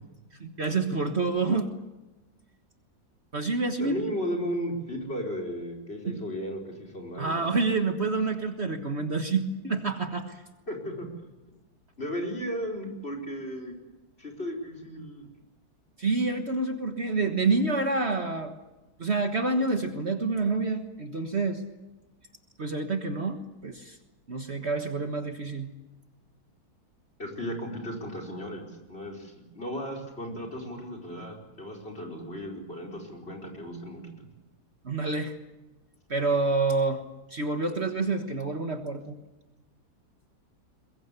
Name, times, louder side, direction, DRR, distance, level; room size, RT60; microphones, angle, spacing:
voice 1, 0.4-1.7 3.3-4.0 6.1-6.2 7.2-10.4 16.0-18.5 19.0-21.6 22.6-24.0 24.3-25.7 34.8-35.3 36.1-37.0 37.3-39.2, right 3 dB, 45° right, 6 dB, 1.7 m, -28 dB
voice 2, 3.8-7.5 10.7-11.1 12.0-13.7 14.2-15.3 27.2-34.3, equal, 40° left, 4 dB, 4.8 m, -35 dB
22.5 x 22.0 x 8.3 m, 1.1 s
omnidirectional pair, 1.7 m